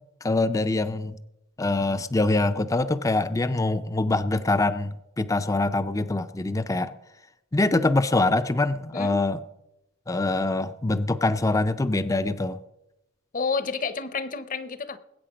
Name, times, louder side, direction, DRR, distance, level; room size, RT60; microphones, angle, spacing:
voice 1, 0.2-1.2 1.6-6.9 7.5-9.4 10.1-12.6, left 2 dB, 15° left, 13 dB, 0.4 m, -24 dB
voice 2, 13.3-15.0, left 5 dB, 40° left, 13 dB, 0.8 m, -30 dB
20.0 x 8.6 x 5.0 m, 0.88 s
head